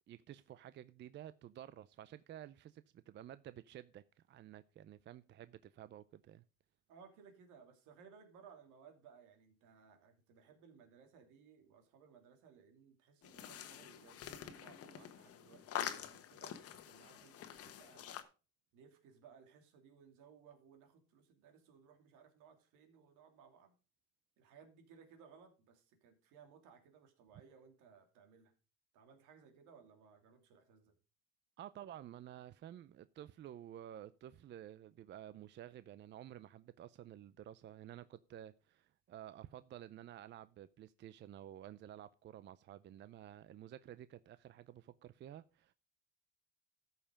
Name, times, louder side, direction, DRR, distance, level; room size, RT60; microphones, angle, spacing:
voice 1, 0.1-4.0 4.3-6.4 31.6-45.7, right 11 dB, 40° right, 0.5 m, -52 dB
voice 2, 6.9-15.7 15.9-18.1 18.7-23.8 24.4-28.5 28.9-30.9, right 6 dB, 80° right, 2.7 m, -62 dB
sound 1, 13.2-18.2, left 10 dB, 50° left, 1.3 m, -46 dB
13.5 x 5.7 x 4.9 m
cardioid pair, 120°, 30 cm